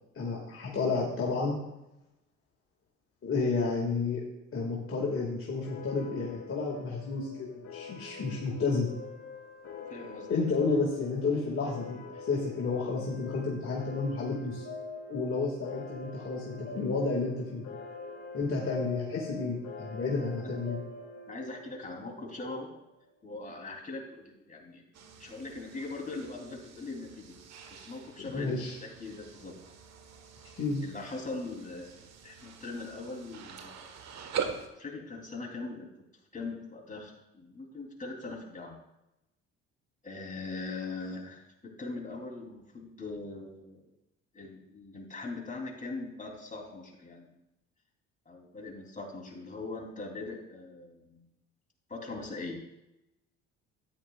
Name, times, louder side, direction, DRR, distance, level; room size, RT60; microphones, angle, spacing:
voice 1, 0.1-1.6 3.2-4.2 4.5-8.9 10.3-14.7 15.1-17.7 18.3-20.8 28.2-28.8 30.6-30.8, left 4 dB, 40° left, -3 dB, 2.1 m, -31 dB
sound 1, 5.6-22.7, left 3 dB, 70° left, 2.5 m, -44 dB
voice 2, 9.9-10.3 20.4-20.6 21.3-22.7 23.2-24.8 25.2-27.3 27.7-29.5 30.8-33.9 34.8-35.9 36.3-38.8 40.0-43.8 44.3-47.3 48.2-51.2 51.9-52.6, left 3 dB, 25° left, 0 dB, 3.3 m, -41 dB
sound 2, 24.9-34.7, right 7 dB, 50° right, 1.4 m, -43 dB
13.0 x 9.7 x 2.4 m, 0.91 s
hypercardioid pair, 60°, 33 cm